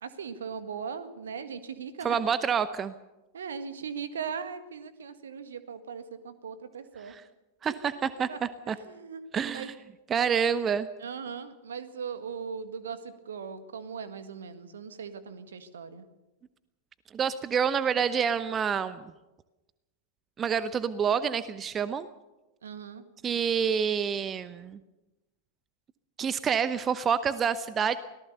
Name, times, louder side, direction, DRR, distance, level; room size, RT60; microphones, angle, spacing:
voice 1, 0.0-2.2 3.3-7.1 7.7-7.9 8.3-8.4 8.8-9.2 9.5-9.7 11.0-13.0 13.3-16.1 22.6-23.0, right 6 dB, 65° right, 11 dB, 1.8 m, -39 dB
voice 2, 2.0-2.9 7.0-7.2 7.6-8.8 9.3-9.7 10.1-10.9 17.1-19.1 20.4-22.1 23.2-24.8 26.2-28.0, right 7 dB, 25° right, 15 dB, 0.8 m, -28 dB
25.0 x 18.0 x 6.8 m, 1.0 s
figure-of-eight pair, 90°, 0 cm